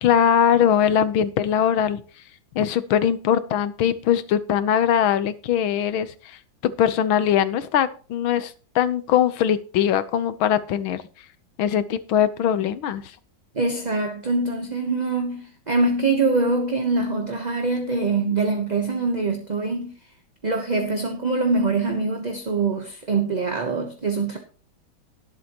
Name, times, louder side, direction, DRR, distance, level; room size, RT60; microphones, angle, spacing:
voice 1, 0.0-2.0 2.5-6.4 6.6-11.0 11.6-13.0, left 9 dB, 85° left, 1.7 m, -21 dB
voice 2, 13.5-19.9 20.4-24.4, right 3 dB, 30° right, 0.9 m, -24 dB
18.5 x 7.7 x 3.0 m
omnidirectional pair, 2.2 m